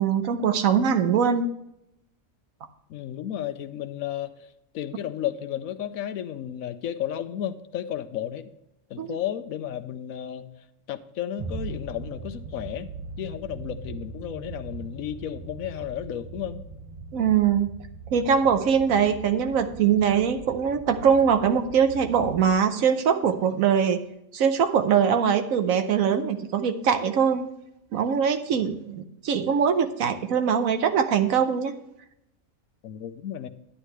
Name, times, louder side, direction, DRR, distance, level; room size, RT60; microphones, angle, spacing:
voice 1, 0.0-1.5 9.0-9.2 17.1-17.7 18.1-24.0 24.3-27.5 27.9-31.7, right 7 dB, 85° right, 8 dB, 1.2 m, -22 dB
voice 2, 2.9-4.3 4.7-8.5 8.9-10.5 10.9-12.9 13.2-16.6 32.8-33.5, left 10 dB, 90° left, 11 dB, 1.1 m, -33 dB
sound 1, 11.4-22.6, right 4 dB, 35° right, 0.6 m, -40 dB
10.0 x 9.9 x 3.2 m, 0.81 s
omnidirectional pair, 1.4 m